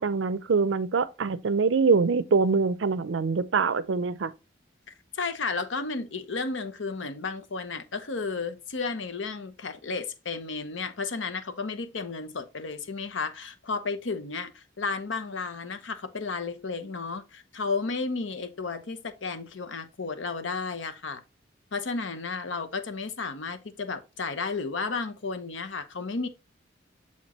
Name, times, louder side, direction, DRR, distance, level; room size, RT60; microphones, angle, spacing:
voice 1, 0.0-4.3, right 4 dB, 75° right, 0.5 m, -24 dB
voice 2, 5.1-21.2 21.7-26.3, left 4 dB, 80° left, 0.8 m, -33 dB
7.1 x 4.4 x 3.0 m
head